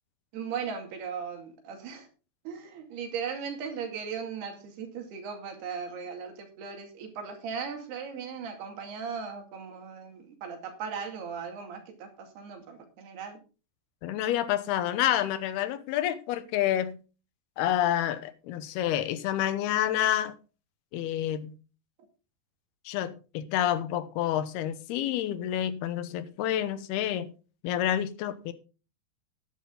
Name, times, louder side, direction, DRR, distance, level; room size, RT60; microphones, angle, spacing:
voice 1, 0.3-2.1 2.4-13.4, right 6 dB, 80° right, 4.4 m, -38 dB
voice 2, 14.0-17.0 17.6-20.3 20.9-21.5 22.9-27.3 27.6-28.5, left 11 dB, 85° left, 2.9 m, -28 dB
12.5 x 10.5 x 3.9 m
omnidirectional pair, 4.5 m